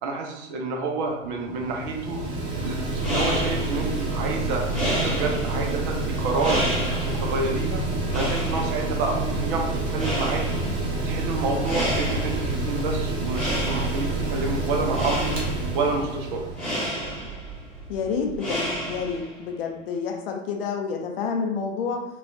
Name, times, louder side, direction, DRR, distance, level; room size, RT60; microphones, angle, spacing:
voice 1, 0.0-2.2 2.6-6.6 6.9-7.8 8.1-10.6 11.0-15.4 15.7-16.4, right 3 dB, 40° right, 1 dB, 0.7 m, -29 dB
Mechanical fan, 1.0-17.3, right 2 dB, 15° right, 0.3 m, -28 dB
sound 1, 3.0-19.4, equal, ahead, 1.2 m, -32 dB
voice 2, 17.9-18.6 18.9-22.1, left 5 dB, 50° left, 3 dB, 0.6 m, -28 dB
4.1 x 2.4 x 2.6 m, 0.90 s
figure-of-eight pair, 95°, 38 cm